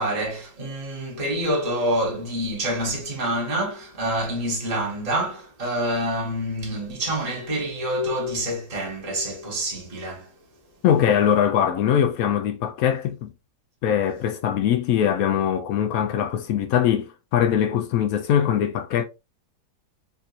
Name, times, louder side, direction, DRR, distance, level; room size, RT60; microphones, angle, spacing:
voice 1, 0.0-10.3, right 1 dB, 25° right, 1.1 m, -27 dB
voice 2, 10.8-13.3 13.8-19.0, left 9 dB, 90° left, 0.7 m, -22 dB
3.7 x 2.7 x 2.4 m
omnidirectional pair, 2.1 m